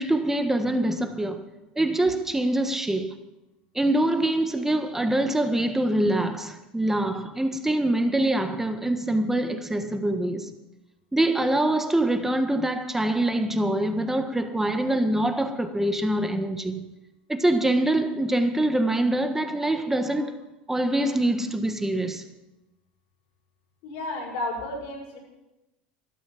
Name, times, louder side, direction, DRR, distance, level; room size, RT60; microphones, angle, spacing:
voice 1, 0.0-1.4 1.7-3.1 3.7-10.5 11.1-16.8 17.3-20.4 20.7-22.2, right 1 dB, 10° right, 1.5 m, -24 dB
voice 2, 23.8-25.2, left 1 dB, 65° left, 5.1 m, -32 dB
13.0 x 12.0 x 5.9 m
hypercardioid pair, 95°, 5 cm